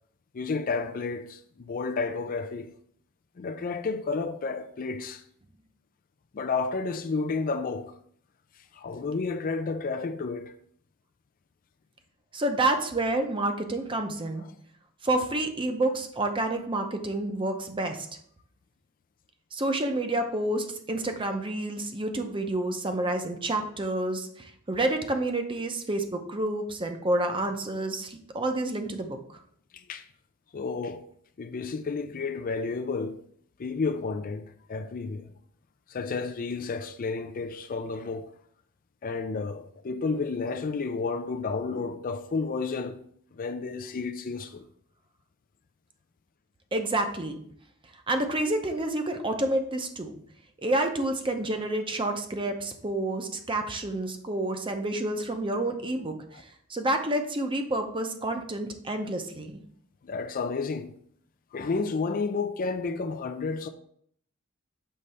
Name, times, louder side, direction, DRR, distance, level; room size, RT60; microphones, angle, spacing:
voice 1, 0.3-2.7 3.4-5.2 6.3-7.9 8.7-10.5 14.4-14.5 29.7-30.1 30.5-31.0 31.4-33.2 33.6-35.3 35.9-38.3 39.0-43.0 43.3-44.6 60.0-60.9 61.5-63.7, left 4 dB, 40° left, 0.4 m, -31 dB
voice 2, 12.3-14.4 15.0-18.1 19.5-29.2 46.7-47.4 48.1-50.1 50.6-59.6, right 2 dB, 25° right, 0.7 m, -29 dB
6.5 x 3.3 x 5.5 m
head